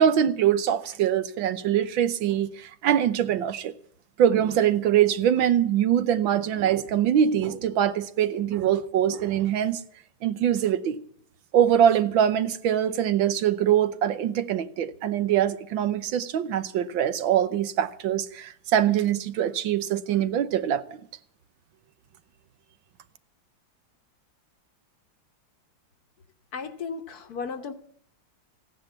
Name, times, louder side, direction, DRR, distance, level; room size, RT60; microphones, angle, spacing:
voice 1, 0.0-3.7 4.2-9.8 10.2-11.0 11.5-20.8, right 10 dB, 85° right, 1.6 m, -23 dB
voice 2, 26.5-27.7, left 5 dB, 60° left, 1.3 m, -34 dB
15.5 x 10.0 x 7.3 m
omnidirectional pair, 2.1 m